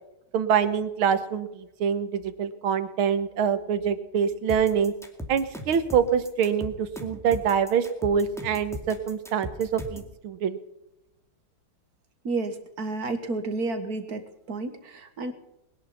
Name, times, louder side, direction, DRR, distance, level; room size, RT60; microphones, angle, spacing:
voice 1, 0.3-4.9 5.3-10.6, right 7 dB, 75° right, 12 dB, 1.9 m, -25 dB
sound 1, 4.5-10.1, equal, ahead, 2.2 m, -38 dB
voice 2, 12.2-15.3, right 3 dB, 45° right, 8 dB, 1.8 m, -31 dB
21.0 x 11.0 x 5.7 m, 0.91 s
omnidirectional pair, 2.4 m